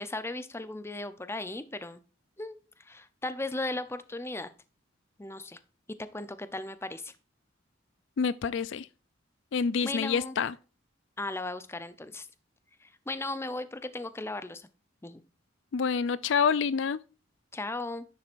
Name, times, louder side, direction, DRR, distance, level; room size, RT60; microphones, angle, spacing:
voice 1, 0.0-2.0 2.4-2.6 2.8-4.5 5.2-5.6 6.1-7.1 9.8-10.3 11.2-12.3 12.8-14.7 15.0-15.2 17.5-18.0, left 2 dB, 15° left, 0.6 m, -36 dB
voice 2, 8.2-8.9 9.5-10.5 15.7-17.0, left 6 dB, 70° left, 0.4 m, -27 dB
10.5 x 7.4 x 2.5 m
head